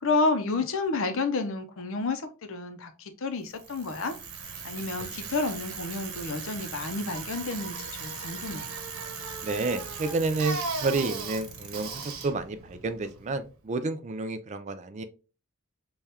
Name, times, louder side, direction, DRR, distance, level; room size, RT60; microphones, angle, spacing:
voice 1, 0.0-4.1 4.5-8.7, left 3 dB, 65° left, 0.6 m, -30 dB
Bicycle, 3.5-13.6, right 4 dB, 90° right, 1.0 m, -38 dB
voice 2, 9.4-15.0, right 3 dB, 35° right, 0.3 m, -30 dB
4.2 x 2.3 x 3.4 m
head